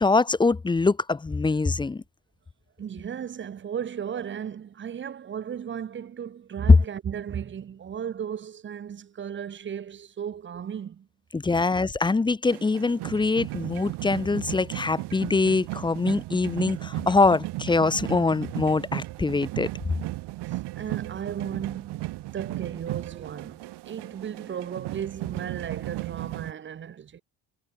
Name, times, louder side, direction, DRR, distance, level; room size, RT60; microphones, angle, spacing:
voice 1, 0.0-2.0 11.3-19.7, left 3 dB, 10° left, 0.7 m, -24 dB
voice 2, 2.8-11.1 20.5-27.2, right 8 dB, 30° right, 1.0 m, -35 dB
sound 1, 12.5-26.5, right 18 dB, 90° right, 4.2 m, -35 dB
cardioid pair, 160°, 40 cm